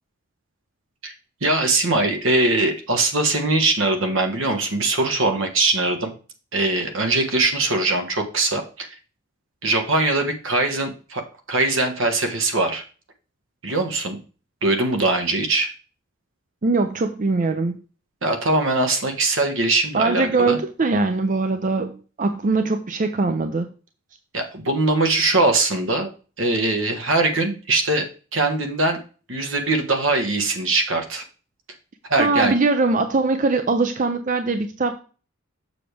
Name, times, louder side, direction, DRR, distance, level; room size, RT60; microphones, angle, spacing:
voice 1, 1.4-6.1 6.5-8.9 9.6-11.2 11.5-12.8 13.6-14.2 14.6-15.7 18.2-20.6 24.3-26.1 26.4-28.1 28.3-29.0 29.3-31.2 32.1-32.5, right 2 dB, 70° right, 5 dB, 1.5 m, -21 dB
voice 2, 16.6-17.7 19.9-23.7 32.2-35.0, right 3 dB, 40° right, 8 dB, 0.5 m, -21 dB
7.0 x 6.5 x 3.4 m, 0.36 s
head